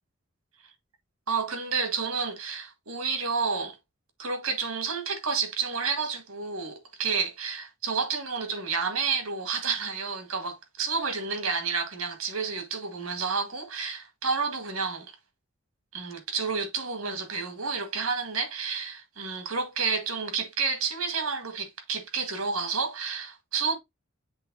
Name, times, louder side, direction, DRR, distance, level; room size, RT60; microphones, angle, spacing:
voice 1, 1.3-3.8 4.2-15.1 15.9-23.8, right 5 dB, 90° right, 1.8 m, -30 dB
7.5 x 3.4 x 3.8 m
head